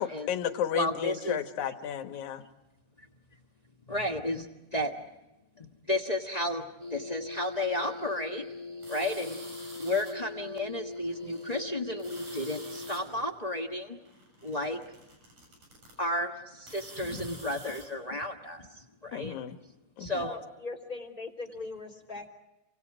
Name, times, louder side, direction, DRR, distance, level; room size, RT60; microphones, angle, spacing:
voice 1, 0.0-2.4 19.1-19.6 20.0-20.3, left 9 dB, 80° left, 8 dB, 2.6 m, -33 dB
voice 2, 0.7-1.4 3.9-4.5 4.7-4.9 5.6-6.6 6.9-8.4 8.9-9.4 9.8-14.0 14.4-14.8 16.0-19.3 20.0-20.4, left 1 dB, 35° left, 3 dB, 0.6 m, -32 dB
sound 1, 6.8-13.3, left 3 dB, 70° right, 0.3 m, -41 dB
sound 2, 8.8-10.1 10.9-11.6 11.9-13.0 13.9-15.9 16.6-17.8, right 1 dB, 85° right, 8.8 m, -49 dB
voice 3, 20.2-22.3, left 3 dB, 15° left, 0 dB, 3.3 m, -40 dB
30.0 x 25.0 x 4.9 m, 1.0 s
omnidirectional pair, 3.3 m